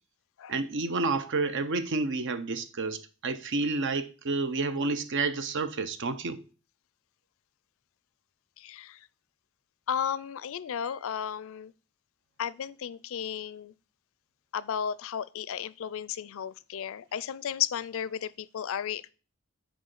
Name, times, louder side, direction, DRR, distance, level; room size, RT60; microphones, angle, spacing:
voice 1, 0.5-6.4, right 3 dB, 60° right, 0.7 m, -30 dB
voice 2, 8.6-9.1 9.9-11.7 12.4-13.7 14.5-19.1, left 8 dB, 65° left, 0.4 m, -34 dB
6.2 x 4.9 x 6.5 m
head